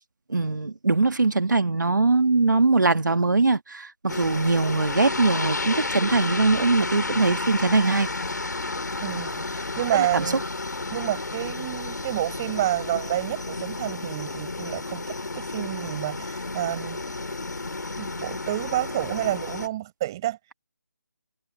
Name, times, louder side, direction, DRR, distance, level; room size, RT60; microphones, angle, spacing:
voice 1, 0.3-8.1 9.9-10.3, right 3 dB, 75° right, 1.9 m, -22 dB
sound 1, 4.1-19.7, left 3 dB, 70° left, 6.4 m, -32 dB
voice 2, 9.0-10.4 10.9-17.0 18.0-20.4, right 14 dB, 15° right, 5.8 m, -29 dB
figure-of-eight pair, 175°, 10 cm